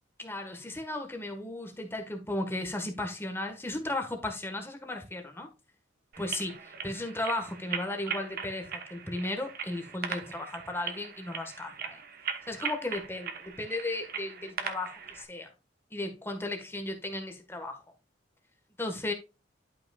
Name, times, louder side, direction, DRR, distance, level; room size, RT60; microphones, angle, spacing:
voice 1, 0.2-5.5 6.2-6.5 6.8-12.0 12.5-15.5 15.9-17.8 18.8-19.1, left 2 dB, 10° left, 1.4 m, -35 dB
sound 1, 6.1-15.2, right 6 dB, 50° right, 1.1 m, -39 dB
11.5 x 5.4 x 2.4 m
head